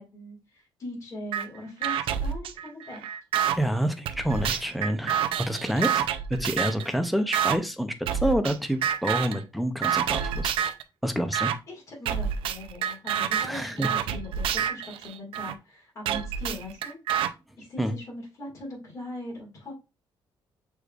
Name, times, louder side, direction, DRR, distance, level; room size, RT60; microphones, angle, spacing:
voice 1, 0.0-3.0 11.7-17.0 17.6-19.8, left 1 dB, 35° left, 1.9 m, -40 dB
sound 1, 1.3-1.5 1.8-3.6 4.1-6.9 7.3-7.6 8.1-8.6 8.8-9.4 9.8-10.8 11.3-11.6 12.1-15.5 16.1-17.3, right 9 dB, 80° right, 0.4 m, -28 dB
voice 2, 3.5-10.5 11.0-11.5 13.4-13.9 17.8-17.9, equal, ahead, 0.5 m, -28 dB
6.3 x 3.4 x 2.4 m
cardioid pair, 170°, 9 cm